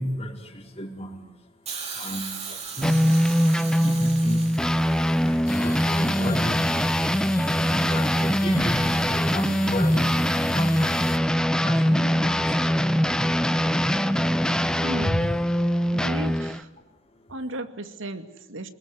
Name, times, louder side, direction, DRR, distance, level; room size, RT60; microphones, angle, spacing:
voice 1, 0.0-15.2 15.9-16.0 16.9-17.4, equal, 30° left, 4.3 m, -35 dB
Hiss, 1.7-5.8 6.8-6.9, right 5 dB, 35° right, 4.3 m, -37 dB
sound 1, 2.8-16.6, equal, 5° left, 1.0 m, -22 dB
sound 2, 5.5-11.2, left 1 dB, 50° left, 3.7 m, -35 dB
voice 2, 14.8-15.2 15.9-16.7 17.3-18.7, right 1 dB, 90° right, 2.4 m, -34 dB
27.5 x 21.0 x 9.4 m
head